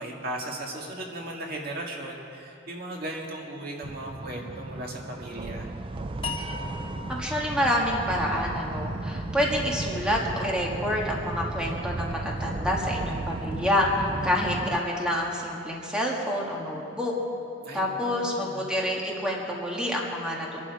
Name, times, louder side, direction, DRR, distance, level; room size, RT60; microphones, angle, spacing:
voice 1, 0.0-5.7 17.6-18.7, right 1 dB, 55° right, -1 dB, 2.0 m, -37 dB
sound 1, 3.8-14.8, right 2 dB, 30° right, 0.4 m, -34 dB
sound 2, 6.2-9.4, left 4 dB, 30° left, 1.1 m, -40 dB
voice 2, 7.1-17.1 17.7-20.6, left 1 dB, 5° right, -3 dB, 1.7 m, -28 dB
24.5 x 11.5 x 4.8 m, 2.7 s
head